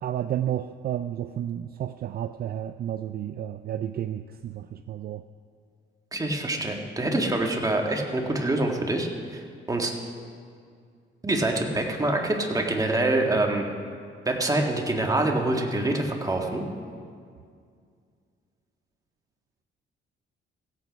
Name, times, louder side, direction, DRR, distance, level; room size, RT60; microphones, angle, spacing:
voice 1, 0.0-5.2, right 10 dB, 50° right, 11 dB, 0.4 m, -31 dB
voice 2, 6.1-9.4 9.7-9.9 11.2-13.7 14.3-16.6, right 2 dB, 15° right, 1 dB, 1.7 m, -25 dB
16.0 x 8.5 x 5.2 m, 2.2 s
cardioid pair, 90°, 20 cm